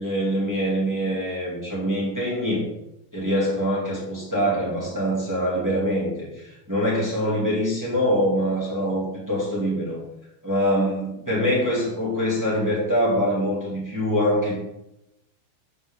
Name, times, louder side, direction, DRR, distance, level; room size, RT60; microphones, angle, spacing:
voice 1, 0.0-2.7 3.1-10.0 10.4-14.6, equal, 5° right, -6 dB, 1.4 m, -24 dB
8.3 x 7.8 x 3.7 m, 0.89 s
omnidirectional pair, 5.0 m